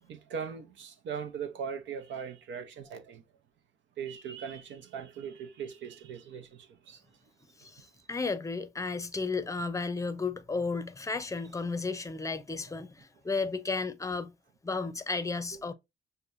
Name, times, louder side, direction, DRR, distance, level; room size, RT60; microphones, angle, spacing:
voice 1, 0.0-3.2 4.0-7.0 7.8-7.9, right 7 dB, 70° right, 0.7 m, -40 dB
voice 2, 7.6-14.3 14.6-15.7, left 4 dB, 15° left, 0.6 m, -33 dB
6.5 x 2.2 x 2.5 m
cardioid pair, 90°, 20 cm